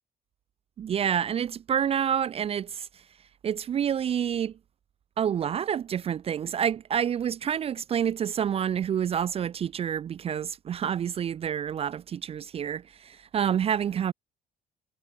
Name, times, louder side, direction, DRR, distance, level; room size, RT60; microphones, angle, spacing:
voice 1, 0.8-2.9 3.4-4.5 5.2-14.1, right 8 dB, 35° right, 0.4 m, -28 dB
cardioid pair, 110°, 17 cm